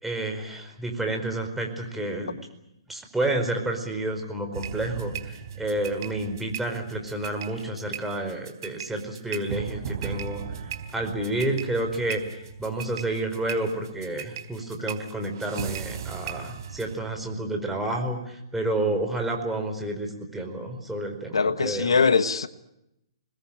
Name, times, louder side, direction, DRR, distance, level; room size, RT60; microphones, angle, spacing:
voice 1, 0.0-2.4 2.9-22.0, right 1 dB, 5° right, 2 dB, 4.8 m, -30 dB
sound 1, 4.5-17.0, right 8 dB, 50° right, 3.8 m, -37 dB
voice 2, 21.3-22.5, left 5 dB, 80° left, 11 dB, 1.5 m, -22 dB
27.0 x 20.5 x 8.9 m, 0.85 s
hypercardioid pair, 135°, 3 cm